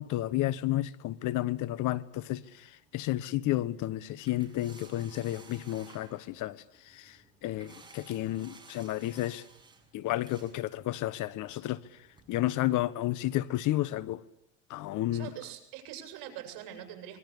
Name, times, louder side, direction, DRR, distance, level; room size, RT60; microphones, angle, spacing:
voice 1, 0.0-2.7 2.9-6.6 6.9-7.2 7.4-9.4 9.9-11.8 12.3-14.2 14.7-15.3, left 15 dB, 50° left, 1.3 m, -31 dB
sound 1, 1.8-12.3, right 3 dB, 10° right, 6.4 m, -57 dB
voice 2, 15.1-17.2, right 11 dB, 55° right, 7.0 m, -44 dB
25.0 x 22.5 x 8.5 m
supercardioid pair, 120°, 39 cm